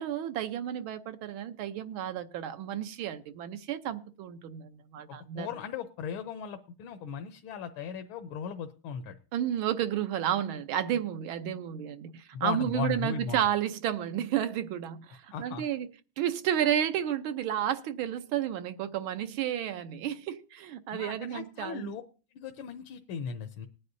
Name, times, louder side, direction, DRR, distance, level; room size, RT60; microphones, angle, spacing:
voice 1, 0.0-5.5 9.3-15.9 16.2-21.9, right 10 dB, 80° right, 1.6 m, -31 dB
voice 2, 5.2-9.1 12.3-13.4 15.3-15.6 20.9-22.0 22.3-23.7, left 7 dB, 80° left, 1.5 m, -37 dB
20.0 x 9.6 x 2.6 m
omnidirectional pair, 2.2 m